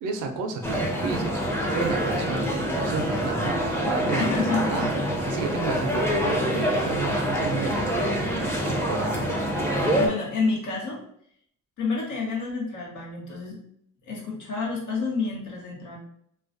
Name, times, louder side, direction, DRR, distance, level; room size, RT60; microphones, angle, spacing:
voice 1, 0.0-5.0 5.2-9.4, right 4 dB, 90° right, 5 dB, 0.5 m, -32 dB
sound 1, 0.6-10.1, equal, 10° left, 0.5 m, -26 dB
voice 2, 4.2-5.0 5.3-5.4 6.0-6.2 10.0-11.0 11.8-13.6 14.0-16.0, left 4 dB, 80° left, -2 dB, 1.0 m, -29 dB
2.3 x 2.2 x 2.5 m, 0.67 s
cardioid pair, 90°, 30 cm